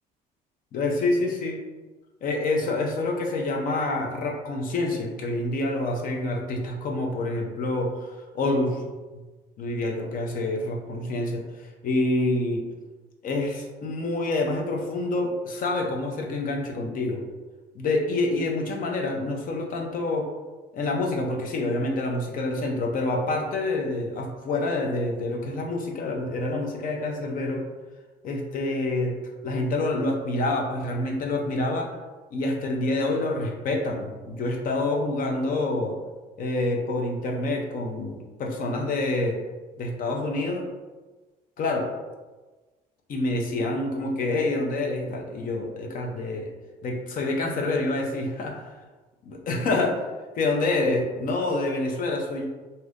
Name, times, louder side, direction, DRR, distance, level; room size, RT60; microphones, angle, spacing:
voice 1, 0.7-1.6 2.2-8.8 9.1-9.2 9.6-12.6 13.2-17.2 17.7-20.3 20.7-27.6 28.2-29.1 29.4-31.9 32.3-36.0 36.4-39.4 39.8-40.7 41.6-41.9 43.1-46.5 46.8-48.7 49.3-50.0 50.4-52.5, left 2 dB, 55° left, 1 dB, 0.6 m, -27 dB
2.7 x 2.5 x 3.4 m, 1.2 s
cardioid pair, 110°, 17 cm